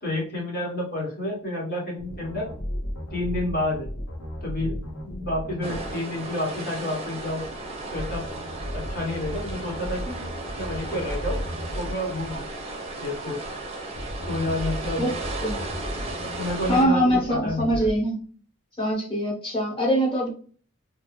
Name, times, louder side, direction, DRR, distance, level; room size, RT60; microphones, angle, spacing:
voice 1, 0.0-2.5 3.1-3.9 4.4-4.7 5.0-7.4 7.9-8.2 8.7-10.2 10.6-11.4 11.7-12.5 13.0-13.4 14.3-15.0 16.4-17.0 17.3-17.8, left 1 dB, 50° left, -2 dB, 1.1 m, -29 dB
sound 1, 2.0-5.9 7.9-11.9 13.9-17.9, equal, 85° left, 0.8 m, -34 dB
sound 2, 5.6-16.8, right 2 dB, 30° right, 0.5 m, -35 dB
voice 2, 16.7-18.2 18.8-20.3, equal, 25° left, -3 dB, 1.0 m, -23 dB
2.4 x 2.2 x 3.1 m, 0.42 s
head